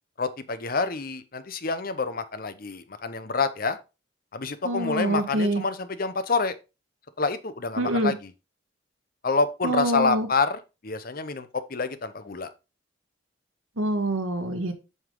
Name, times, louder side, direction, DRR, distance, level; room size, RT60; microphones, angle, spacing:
voice 1, 0.2-3.8 4.3-6.6 7.2-8.3 9.2-12.5, left 4 dB, 45° left, 0.7 m, -28 dB
voice 2, 4.6-5.6 7.8-8.1 9.6-10.3 13.8-14.7, right 1 dB, 85° right, 1.5 m, -25 dB
7.9 x 5.4 x 3.8 m
head